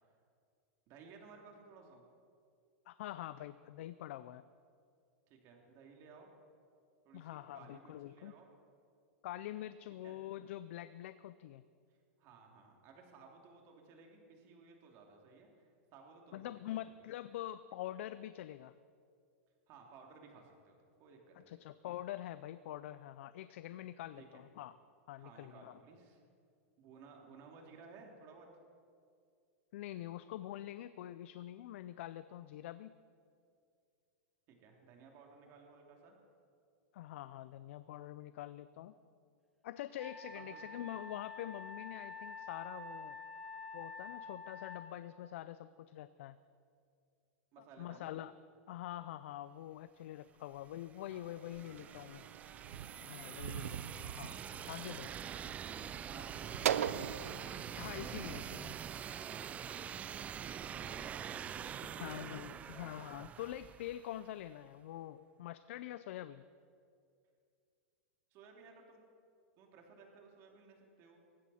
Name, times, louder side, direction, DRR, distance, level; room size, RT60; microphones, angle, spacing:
voice 1, 0.9-2.0 5.3-6.3 7.0-8.5 10.0-10.2 11.9-16.4 19.7-21.6 24.2-24.4 25.2-26.2 26.8-28.5 34.6-36.2 40.3-40.6 47.5-48.2 50.3-50.4 51.1-51.4 51.7-51.9 56.0-57.4 59.7-62.9 68.3-69.0 69.6-71.2, right 4 dB, 40° right, 1 dB, 2.9 m, -58 dB
voice 2, 2.9-4.4 7.1-8.3 9.2-11.6 16.3-18.7 21.4-24.7 25.1-25.8 29.7-32.9 36.9-38.9 39.6-43.2 43.7-46.4 47.8-48.3 48.7-52.2 53.0-55.1 57.8-58.8 62.0-66.4, left 13 dB, 65° left, 14 dB, 0.5 m, -45 dB
Wind instrument woodwind instrument, 40.0-44.9, left 3 dB, ahead, 1.3 m, -48 dB
sound 1, 50.6-64.3, right 8 dB, 20° right, 0.3 m, -45 dB
sound 2, 51.6-58.6, right 10 dB, 90° right, 0.5 m, -41 dB
18.5 x 15.5 x 4.3 m, 2.3 s
supercardioid pair, 145°, 7 cm